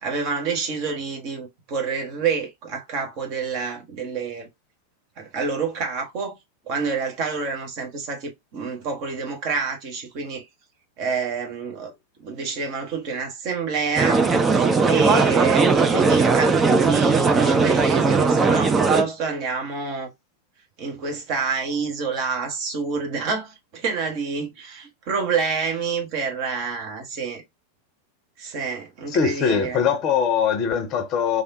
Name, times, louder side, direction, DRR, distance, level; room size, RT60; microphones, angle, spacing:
voice 1, 0.0-4.5 5.2-6.4 6.7-10.4 11.0-11.9 12.2-14.3 14.9-20.1 20.8-27.4 28.4-29.8, right 5 dB, 45° right, 1.1 m, -27 dB
sound 1, 14.0-19.0, right 4 dB, 20° right, 0.5 m, -18 dB
voice 2, 29.1-31.4, left 7 dB, 35° left, 0.7 m, -22 dB
3.4 x 2.5 x 2.6 m
figure-of-eight pair, 90°, 0 cm